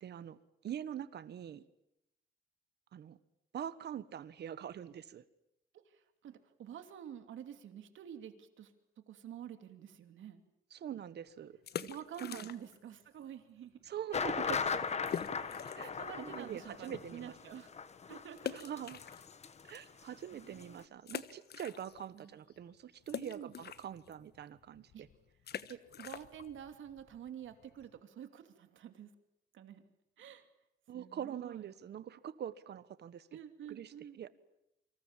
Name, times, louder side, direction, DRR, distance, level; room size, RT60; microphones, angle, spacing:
voice 1, 0.0-0.4 0.6-1.6 2.9-3.2 3.5-5.2 10.7-11.6 12.2-12.5 13.8-14.9 15.7-17.3 18.5-19.0 19.6-25.1 30.9-33.3 33.7-34.3, right 9 dB, 55° right, 15 dB, 1.3 m, -44 dB
voice 2, 5.7-8.7 9.0-10.4 11.8-13.8 15.4-17.7 18.1-18.6 19.9-20.8 22.1-22.4 23.2-23.5 24.9-25.0 25.7-29.1 29.5-29.8 30.2-30.5 30.9-31.7 33.3-34.2, right 9 dB, 75° right, 8 dB, 2.8 m, -49 dB
sound 1, 11.5-12.9 13.2-13.3 13.9-14.0 14.2-14.3 15.1-16.0 16.5-16.6 18.4-19.7 20.2-20.3 21.0-22.2 22.5-28.0, left 8 dB, 55° left, 1.2 m, -45 dB
sound 2, 14.1-19.8 20.0-20.1 20.5-20.6, left 6 dB, 35° left, 1.4 m, -38 dB
28.5 x 26.0 x 7.4 m, 0.84 s
wide cardioid pair, 160°, 20 cm